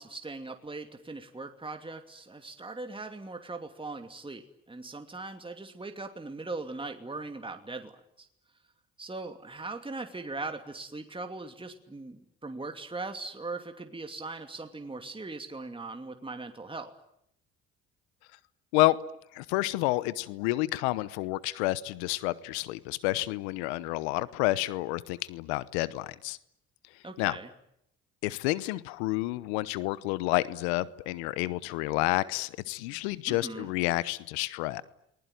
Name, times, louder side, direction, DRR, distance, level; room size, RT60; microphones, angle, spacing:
voice 1, 0.0-7.9 8.2-8.3 9.0-16.9 27.0-27.5 33.3-33.7, right 3 dB, 15° right, 6 dB, 2.7 m, -40 dB
voice 2, 19.3-26.4 27.2-27.4 28.2-34.8, left 19 dB, 85° left, 19 dB, 1.0 m, -29 dB
29.0 x 20.5 x 9.3 m, 0.76 s
supercardioid pair, 65°, 32 cm